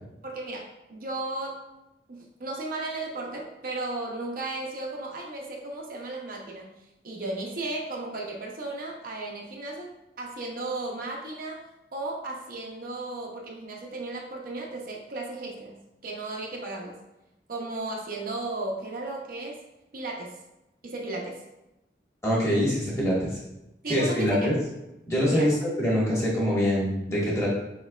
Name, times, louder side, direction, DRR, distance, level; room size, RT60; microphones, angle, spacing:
voice 1, 0.2-1.6 2.1-6.7 7.0-17.0 17.5-19.6 19.9-20.4 20.8-21.4 23.8-24.5 25.3-25.5, right 2 dB, 55° right, -1 dB, 0.6 m, -35 dB
voice 2, 22.2-23.4 23.9-24.5 25.1-27.5, equal, 15° left, -6 dB, 1.4 m, -24 dB
4.5 x 4.3 x 2.3 m, 0.92 s
head